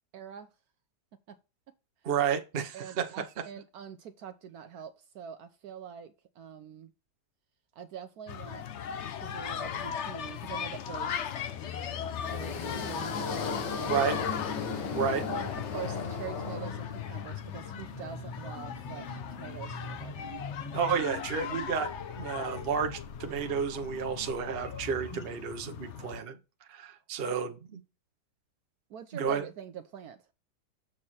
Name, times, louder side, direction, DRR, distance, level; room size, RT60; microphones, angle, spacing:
voice 1, 0.1-0.5 1.3-1.4 2.7-6.9 7.8-8.7 9.1-11.2 12.3-14.3 15.2-20.4 27.3-27.4 28.9-30.2, right 8 dB, 70° right, 1.1 m, -44 dB
voice 2, 2.0-3.1 13.9-14.2 14.9-15.2 20.7-26.4 26.7-27.8 29.1-29.4, right 7 dB, 45° right, 0.9 m, -31 dB
sound 1, 8.3-26.2, left 8 dB, 60° left, 0.8 m, -39 dB
sound 2, 11.5-25.3, left 3 dB, 30° left, 0.4 m, -44 dB
sound 3, 12.1-17.3, left 5 dB, 90° left, 1.8 m, -36 dB
7.5 x 4.6 x 4.2 m
omnidirectional pair, 1.8 m